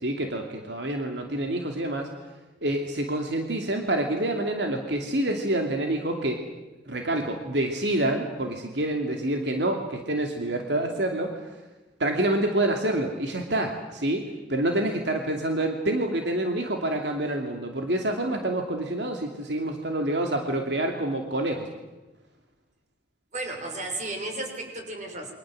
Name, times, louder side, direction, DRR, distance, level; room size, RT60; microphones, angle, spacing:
voice 1, 0.0-2.1 2.6-6.4 6.9-11.4 12.0-21.7, right 1 dB, 75° right, 3 dB, 2.8 m, -27 dB
voice 2, 23.3-25.3, right 2 dB, 45° right, 4 dB, 6.3 m, -33 dB
29.0 x 24.5 x 7.8 m, 1.1 s
head